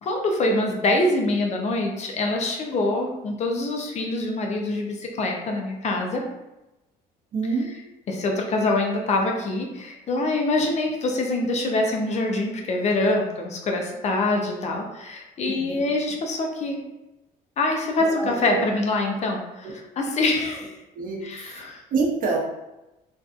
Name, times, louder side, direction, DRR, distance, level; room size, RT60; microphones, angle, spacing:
voice 1, 0.0-6.2 8.1-16.8 17.6-19.7 20.0-20.7 21.2-21.8, left 2 dB, 40° left, 2 dB, 0.5 m, -25 dB
voice 2, 7.3-7.7 15.5-15.8 18.0-18.7 19.6-19.7 20.9-22.4, right 4 dB, 55° right, -1 dB, 0.7 m, -27 dB
2.5 x 2.3 x 2.4 m, 0.98 s
cardioid pair, 110°, 17 cm